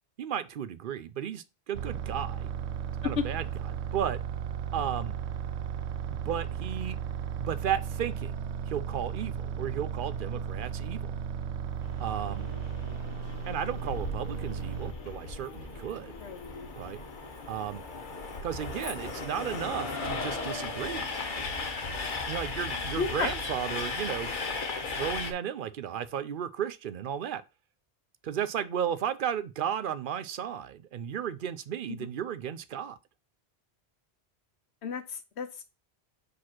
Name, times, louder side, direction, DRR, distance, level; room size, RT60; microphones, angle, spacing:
voice 1, 0.2-2.5 3.0-3.5 3.9-4.2 4.7-5.1 6.1-7.0 7.4-11.1 12.0-12.5 13.4-16.1 16.8-17.0 17.5-17.8 18.4-21.1 22.3-24.3 24.9-27.4 28.2-33.0, right 9 dB, 60° right, 0.7 m, -34 dB
sound 1, 1.7-14.9, right 7 dB, 90° right, 0.9 m, -35 dB
Train, 11.8-25.3, left 3 dB, 50° left, 1.1 m, -36 dB
voice 2, 23.0-23.3 31.9-32.1 34.8-35.6, left 6 dB, 85° left, 1.2 m, -32 dB
5.0 x 4.1 x 5.8 m
omnidirectional pair, 1.1 m